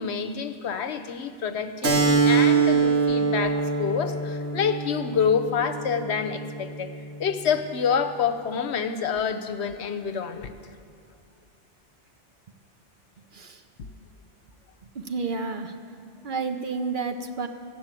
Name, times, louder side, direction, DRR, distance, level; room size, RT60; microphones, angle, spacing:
voice 1, 0.0-6.9 7.2-10.5, left 6 dB, 70° left, 10 dB, 0.9 m, -27 dB
Keyboard (musical), 1.8-7.0, right 4 dB, 65° right, 1.8 m, -24 dB
voice 2, 14.9-15.7 16.2-17.5, right 4 dB, 50° right, 7 dB, 0.8 m, -30 dB
14.0 x 7.1 x 8.9 m, 2.5 s
omnidirectional pair, 1.2 m